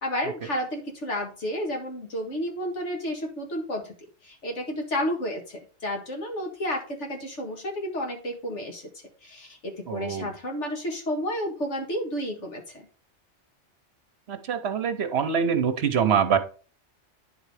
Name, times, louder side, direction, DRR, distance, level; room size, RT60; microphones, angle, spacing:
voice 1, 0.0-3.9 4.2-8.8 9.2-12.8, equal, 80° left, 2 dB, 2.0 m, -31 dB
voice 2, 9.9-10.3 14.3-16.4, right 7 dB, 65° right, 9 dB, 1.0 m, -24 dB
9.9 x 3.9 x 4.8 m, 0.38 s
omnidirectional pair, 1.2 m